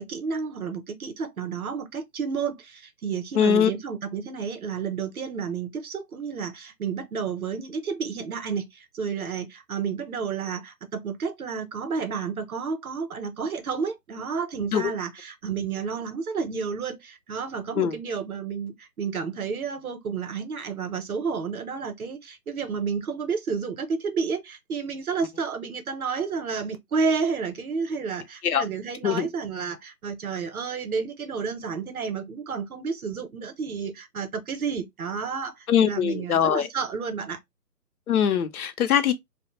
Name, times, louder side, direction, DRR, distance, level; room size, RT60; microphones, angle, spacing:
voice 1, 0.0-37.4, right 5 dB, 60° right, 0.7 m, -31 dB
voice 2, 3.4-3.7 14.7-14.9 17.8-18.0 28.4-28.6 29.0-29.3 35.7-36.7 38.1-39.1, left 8 dB, 60° left, 0.6 m, -22 dB
2.5 x 2.1 x 2.9 m
figure-of-eight pair, 145°, 50 cm